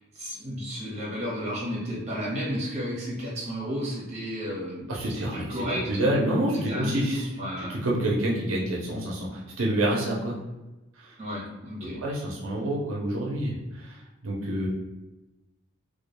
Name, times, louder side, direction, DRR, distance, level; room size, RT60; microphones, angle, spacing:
voice 1, 0.0-6.2 6.5-7.8 11.2-12.0, equal, 35° right, -6 dB, 0.9 m, -33 dB
voice 2, 4.9-7.3 7.7-10.4 12.0-14.7, right 1 dB, 90° right, -3 dB, 0.5 m, -28 dB
2.2 x 2.1 x 2.9 m, 1.0 s
head